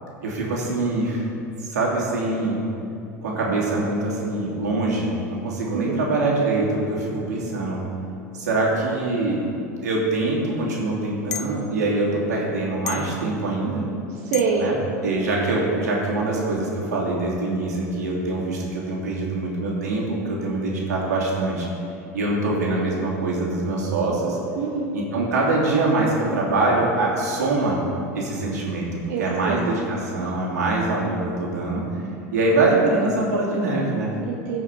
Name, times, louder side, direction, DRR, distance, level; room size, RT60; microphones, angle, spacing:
voice 1, 0.2-1.3 1.6-2.6 3.2-7.8 8.3-9.4 9.8-13.8 14.6-14.7 15.0-21.7 22.1-24.4 24.9-27.8 28.1-31.8 32.3-34.1, right 2 dB, 85° right, -4 dB, 2.7 m, -24 dB
voice 2, 5.7-6.0 14.1-14.6 24.6-24.9 29.1-29.6 34.3-34.6, right 6 dB, 65° right, -3 dB, 1.3 m, -26 dB
sound 1, 11.3-11.5 12.9-13.2 14.3-14.6, left 9 dB, 80° left, 0.5 m, -31 dB
15.5 x 5.7 x 4.8 m, 2.7 s
hypercardioid pair, 95°, 9 cm